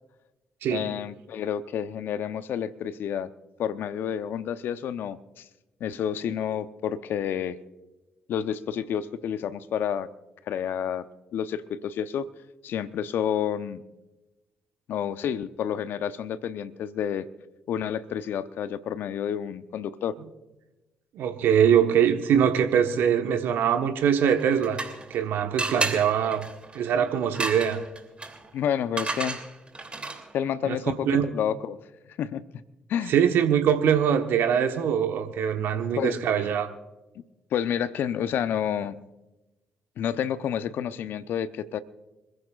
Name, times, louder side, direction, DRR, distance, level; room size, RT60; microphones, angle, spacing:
voice 1, 0.7-3.3 3.6-5.4 5.8-7.6 8.3-10.1 10.5-11.1 11.3-12.3 12.6-13.8 14.9-17.3 17.7-20.1 28.5-29.5 30.3-31.8 32.2-32.6 32.9-33.1 35.7-36.2 37.5-38.9 40.0-41.8, left 9 dB, 65° left, 13 dB, 0.9 m, -29 dB
voice 2, 21.1-24.8 25.1-26.5 26.7-27.8 30.7-30.8 31.1-31.3 33.1-36.7, right 8 dB, 70° right, 6 dB, 1.3 m, -23 dB
sound 1, 24.3-25.2 25.6-30.4, right 3 dB, 30° right, 3.0 m, -33 dB
26.5 x 15.5 x 2.5 m, 1.1 s
hypercardioid pair, 45°, 4 cm